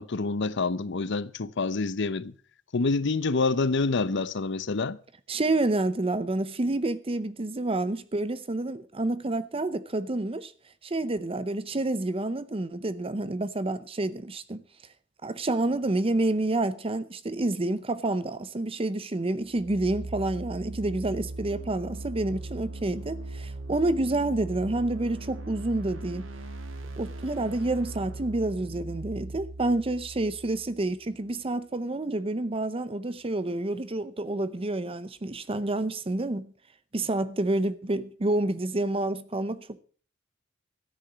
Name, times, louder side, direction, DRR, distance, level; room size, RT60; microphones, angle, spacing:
voice 1, 0.0-2.4 2.7-5.0, left 3 dB, 60° left, 0.7 m, -27 dB
voice 2, 5.3-10.5 10.8-14.6 15.2-26.3 27.0-36.5 36.9-39.8, right 2 dB, 30° right, 0.7 m, -28 dB
sound 1, 19.4-31.2, right 2 dB, 75° right, 1.7 m, -39 dB
13.5 x 9.8 x 6.1 m
head